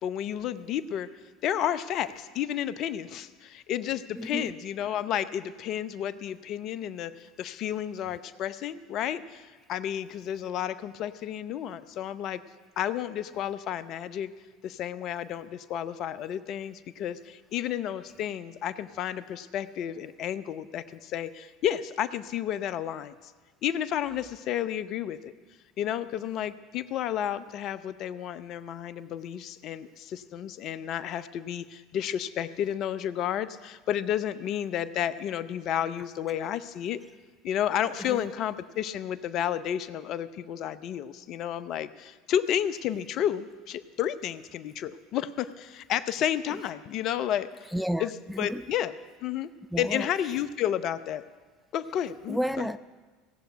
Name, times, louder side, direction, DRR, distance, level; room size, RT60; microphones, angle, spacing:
voice 1, 0.0-1.1 1.4-12.4 12.8-14.3 14.6-23.3 23.6-25.3 25.8-37.0 37.4-47.5 48.0-48.1 48.4-48.9 49.2-49.5 49.8-51.2 51.7-52.7, left 10 dB, 50° left, 0.7 m, -31 dB
voice 2, 4.1-4.5 36.0-36.1 36.4-36.5 38.0-38.3 46.5-46.7 47.7-48.8 49.7-50.5 52.2-52.8, equal, ahead, 0.4 m, -33 dB
17.5 x 7.9 x 9.4 m
hypercardioid pair, 75°, 0 cm